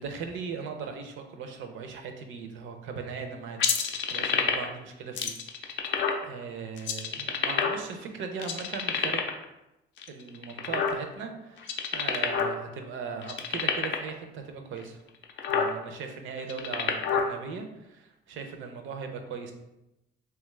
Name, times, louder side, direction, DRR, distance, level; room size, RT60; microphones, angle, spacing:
voice 1, 0.0-9.4 10.1-15.0 15.5-19.5, right 5 dB, 75° right, 5 dB, 0.5 m, -39 dB
sound 1, 3.6-4.8 5.2-6.2 6.8-8.0 8.4-9.4 10.0-11.2 11.6-12.6 12.8-12.9 13.2-14.1 14.8-14.9 15.2-15.7 16.4-17.3, left 6 dB, 70° left, 0.4 m, -27 dB
3.0 x 2.3 x 3.1 m, 0.90 s
cardioid pair, 90°, 20 cm